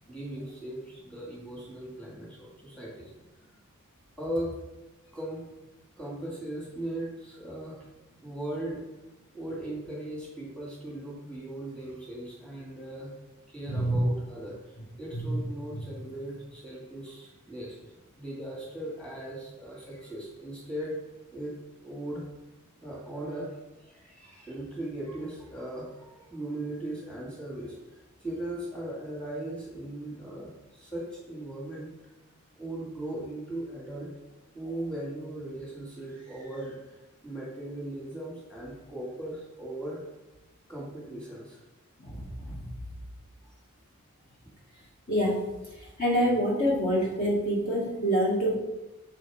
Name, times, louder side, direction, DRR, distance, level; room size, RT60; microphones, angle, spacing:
voice 1, 0.1-3.1 4.2-4.5 5.1-5.4 6.0-7.8 8.2-8.8 9.3-13.1 13.5-17.8 18.2-21.0 21.3-21.6 21.8-22.2 22.8-31.9 32.6-34.1 34.5-40.0 40.7-41.6 43.4-43.5 44.4-44.5, right 1 dB, 5° left, -5 dB, 2.0 m, -38 dB
voice 2, 13.7-14.0 15.1-15.4 15.7-15.8 42.0-42.7 45.1-45.4 46.0-48.6, equal, 35° left, -5 dB, 1.4 m, -26 dB
7.1 x 4.6 x 4.7 m, 1.0 s
head